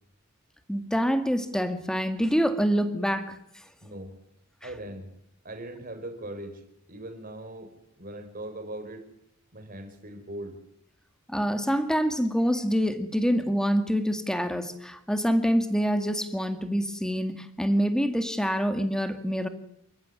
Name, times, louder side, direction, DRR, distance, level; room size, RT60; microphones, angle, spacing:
voice 1, 0.7-3.3 11.3-19.5, equal, 5° left, 9 dB, 2.0 m, -26 dB
voice 2, 3.8-4.1 4.6-5.1 5.4-6.6 6.9-9.1 9.5-10.6, right 1 dB, 40° right, 7 dB, 4.8 m, -40 dB
28.0 x 15.0 x 9.8 m, 0.79 s
head